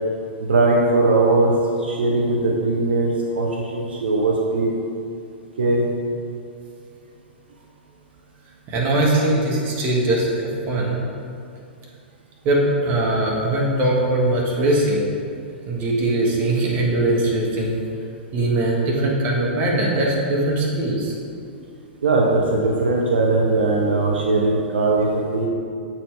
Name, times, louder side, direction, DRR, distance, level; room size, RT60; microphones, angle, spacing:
voice 1, 0.5-1.5 1.8-4.7 5.6-5.9 22.0-25.5, right 2 dB, 70° right, -2 dB, 0.7 m, -19 dB
voice 2, 8.7-10.3 10.7-11.0 12.4-15.1 15.7-17.8 18.3-21.1, right 1 dB, 30° right, -3 dB, 1.2 m, -21 dB
7.3 x 4.4 x 3.2 m, 2.4 s
figure-of-eight pair, 105°, 6 cm